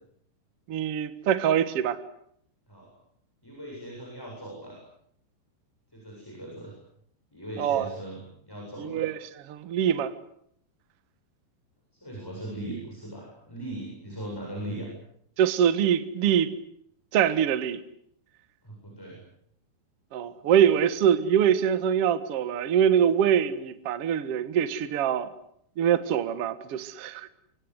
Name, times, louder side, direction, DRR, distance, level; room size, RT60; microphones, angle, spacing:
voice 1, 0.7-2.0 7.6-7.9 8.8-9.2 9.5-10.1 15.4-16.5 17.1-17.8 20.1-25.3 25.8-27.3, right 9 dB, 60° right, 1.5 m, -24 dB
voice 2, 3.4-4.8 5.9-6.7 7.3-9.1 12.0-14.9 18.6-19.2, right 1 dB, 5° left, 7.5 m, -39 dB
25.0 x 25.0 x 8.1 m
omnidirectional pair, 4.8 m